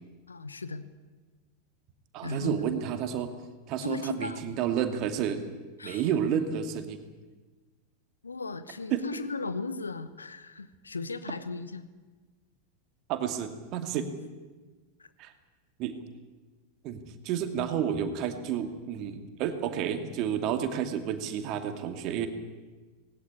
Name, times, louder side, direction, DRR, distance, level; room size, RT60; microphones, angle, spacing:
voice 1, 0.3-0.8 2.2-2.7 3.8-4.4 5.8-6.0 8.2-11.9 15.0-15.1, left 3 dB, 75° left, 13 dB, 1.2 m, -36 dB
voice 2, 2.1-3.3 3.7-5.4 5.8-7.0 8.9-9.1 13.1-14.1 15.2-15.3 15.8-16.0 16.8-22.3, right 8 dB, 40° right, 7 dB, 2.4 m, -30 dB
19.0 x 17.0 x 9.8 m, 1.3 s
figure-of-eight pair, 90°, 0 cm